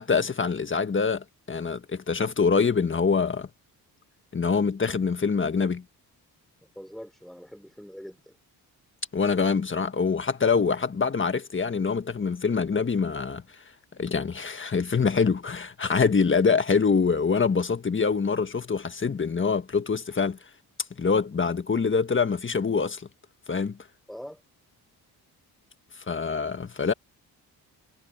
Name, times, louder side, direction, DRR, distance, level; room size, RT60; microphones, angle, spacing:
voice 1, 0.0-3.5 4.3-5.8 9.1-13.4 14.0-20.4 21.0-23.0 23.5-23.8 26.1-26.9, left 5 dB, 30° left, 1.6 m, -25 dB
voice 2, 6.7-8.4 24.1-24.4, equal, ahead, 4.5 m, -43 dB
cardioid pair, 95°, 39 cm